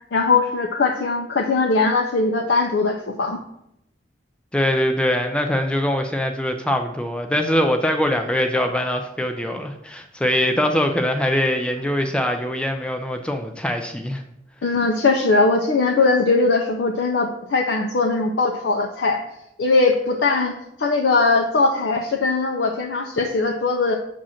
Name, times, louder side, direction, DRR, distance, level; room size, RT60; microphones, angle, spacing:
voice 1, 0.1-3.4 14.6-19.2 19.6-23.9, left 3 dB, 75° left, 1 dB, 0.5 m, -20 dB
voice 2, 4.5-14.2, left 1 dB, 5° left, 4 dB, 0.3 m, -22 dB
7.5 x 2.5 x 5.7 m, 0.81 s
head